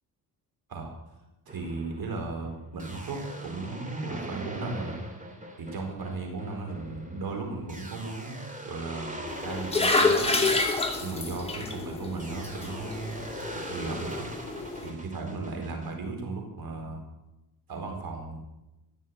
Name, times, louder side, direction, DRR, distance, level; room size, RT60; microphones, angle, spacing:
sound 1, 1.5-11.6 12.2-15.9, right 1 dB, 20° right, 2.6 m, -42 dB
voice 1, 1.5-5.0 5.6-10.5 11.0-14.3 14.8-17.0 17.7-18.4, right 3 dB, 75° right, 2 dB, 4.3 m, -36 dB
sound 2, 9.3-14.9, left 3 dB, 15° left, 2.6 m, -28 dB
15.5 x 6.6 x 9.3 m, 0.96 s
cardioid pair, 80°, 36 cm